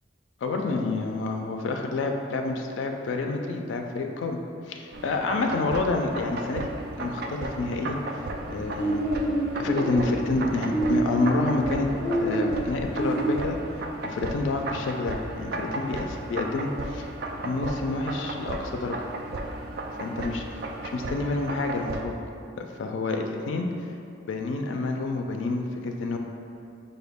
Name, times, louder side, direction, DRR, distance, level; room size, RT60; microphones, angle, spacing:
voice 1, 0.4-4.4 4.7-6.7 7.0-8.2 8.5-9.0 9.6-11.9 12.2-13.6 14.0-17.1 17.4-19.0 20.0-20.6 20.9-22.2 22.6-23.7 24.3-26.2, left 3 dB, 85° left, 3 dB, 0.3 m, -28 dB
sound 1, 4.9-22.0, right 2 dB, 60° right, 0.3 m, -35 dB
sound 2, 8.4-13.4, right 1 dB, 5° right, 1.2 m, -28 dB
4.8 x 2.2 x 3.4 m, 2.5 s
head